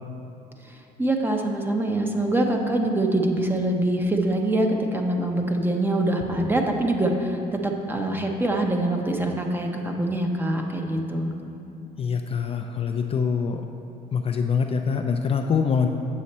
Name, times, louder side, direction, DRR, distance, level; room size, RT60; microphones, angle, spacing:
voice 1, 0.7-11.3, right 1 dB, 10° right, 2 dB, 0.8 m, -24 dB
voice 2, 12.0-13.7 14.1-15.9, left 6 dB, 35° left, 4 dB, 0.4 m, -24 dB
8.2 x 6.3 x 4.2 m, 2.8 s
cardioid pair, 110°, 17 cm